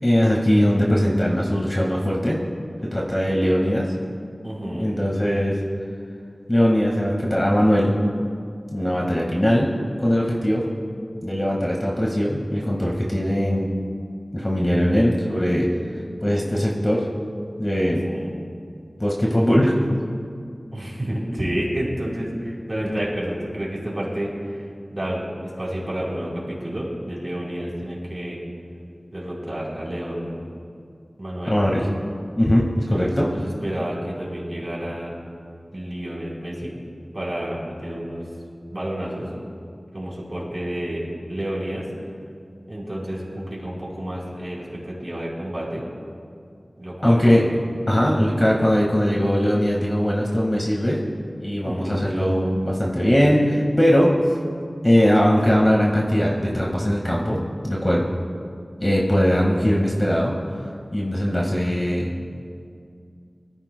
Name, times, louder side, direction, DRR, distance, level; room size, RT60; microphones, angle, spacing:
voice 1, 0.0-2.4 2.9-3.9 4.8-5.6 6.5-7.9 8.7-9.7 10.0-10.6 11.2-13.7 14.3-15.7 16.2-17.1 17.6-18.1 19.0-19.7 31.5-31.9 32.4-33.3 47.0-47.5 47.9-51.0 51.4-54.1 54.8-57.4 57.6-58.1 58.8-60.3 60.9-62.1, equal, 25° left, -3 dB, 1.7 m, -20 dB
voice 2, 4.4-4.9 17.8-18.4 20.7-28.4 29.1-30.4 31.2-31.6 32.9-35.1 35.7-36.7 37.1-38.3 38.7-39.3 39.9-41.0 41.3-41.9 42.7-45.8 46.8-47.4 51.6-52.1, equal, 40° right, -5 dB, 4.0 m, -30 dB
24.0 x 13.5 x 2.2 m, 2.3 s
wide cardioid pair, 50°, 0 cm